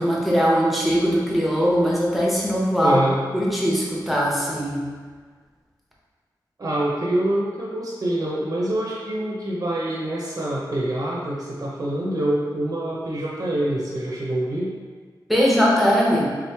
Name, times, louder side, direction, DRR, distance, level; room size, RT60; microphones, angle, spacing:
voice 1, 0.0-3.0 3.3-4.8 15.3-16.3, equal, ahead, -5 dB, 0.8 m, -20 dB
voice 2, 2.8-3.2 6.6-14.7, right 1 dB, 50° right, -5 dB, 0.6 m, -25 dB
3.5 x 3.1 x 3.3 m, 1.5 s
wide cardioid pair, 100°, 8 cm